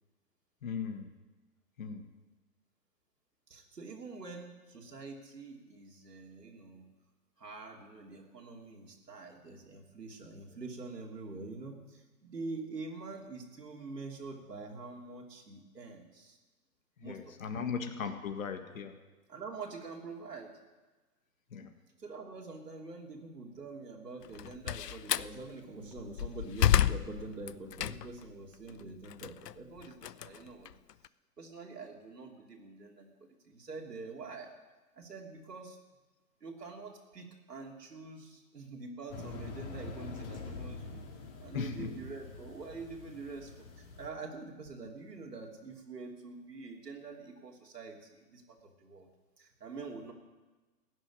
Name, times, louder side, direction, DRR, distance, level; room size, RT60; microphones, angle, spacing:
voice 1, 0.6-1.1 1.8-2.1 17.0-19.0 21.5-21.7 41.5-41.9, left 6 dB, 60° left, 8 dB, 1.8 m, -38 dB
voice 2, 3.5-6.8 7.4-16.4 17.0-17.7 19.3-20.5 22.0-30.7 31.4-34.5 34.9-35.8 36.4-41.0 41.4-49.1 49.4-50.1, right 3 dB, 90° right, 1 dB, 3.1 m, -45 dB
Slam, 24.2-25.3 25.9-28.3 28.7-31.1, left 11 dB, 85° left, 0.6 m, -31 dB
sound 1, 39.1-44.1, left 3 dB, 30° left, 2.0 m, -45 dB
16.5 x 6.5 x 10.0 m, 1.2 s
hypercardioid pair, 145°, 47 cm